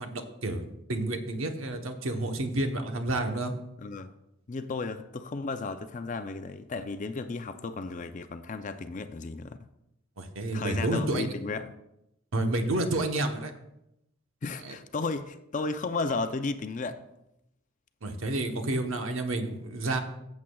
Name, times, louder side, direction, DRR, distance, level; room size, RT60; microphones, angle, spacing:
voice 1, 0.0-3.5 10.2-11.3 12.3-13.5 14.6-14.8 18.0-20.0, right 2 dB, 85° right, 1.0 m, -30 dB
voice 2, 3.8-4.1 4.5-9.6 10.5-11.7 14.4-17.0, left 3 dB, 40° left, 0.4 m, -34 dB
14.5 x 7.2 x 2.3 m
head